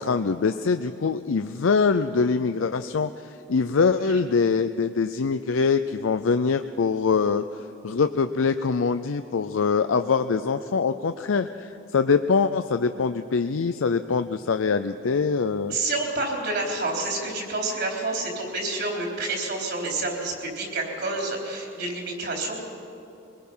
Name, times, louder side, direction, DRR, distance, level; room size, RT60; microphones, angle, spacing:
voice 1, 0.0-15.8, left 5 dB, 85° left, 9 dB, 0.5 m, -24 dB
voice 2, 15.7-22.6, right 2 dB, 55° right, 0 dB, 4.0 m, -28 dB
23.0 x 20.5 x 5.6 m, 2.7 s
head